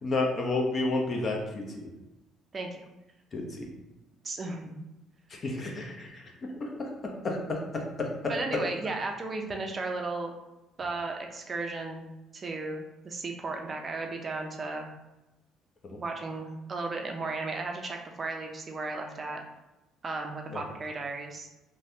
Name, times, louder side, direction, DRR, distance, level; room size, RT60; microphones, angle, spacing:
voice 1, 0.0-1.9 3.3-3.7 5.3-6.2 6.8-8.1 15.8-16.0 20.5-20.6, left 2 dB, 45° left, 1 dB, 0.7 m, -31 dB
voice 2, 4.2-4.7 8.3-10.3 10.8-12.0 12.3-14.9 16.0-19.4 20.0-21.5, right 3 dB, 40° right, 3 dB, 0.5 m, -35 dB
3.2 x 2.2 x 2.7 m, 0.98 s
hypercardioid pair, 65°, 0 cm